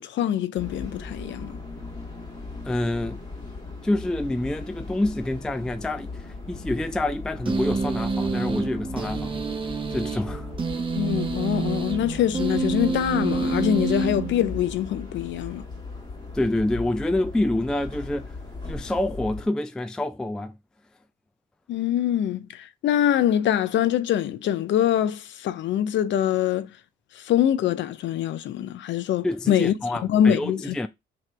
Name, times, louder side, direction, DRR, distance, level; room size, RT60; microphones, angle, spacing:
voice 1, 0.0-1.6 11.0-15.6 21.7-26.7 27.2-29.7 30.0-30.8, left 10 dB, 65° left, 0.5 m, -24 dB
sound 1, 0.6-19.5, left 3 dB, 20° left, 1.8 m, -38 dB
voice 2, 2.6-3.2 3.8-9.4 9.9-10.5 16.3-18.4 18.7-20.6 29.2-30.9, left 1 dB, 5° left, 0.3 m, -27 dB
sound 2, 7.5-14.9, right 4 dB, 25° right, 0.8 m, -28 dB
3.0 x 2.9 x 4.4 m
cardioid pair, 90°, 20 cm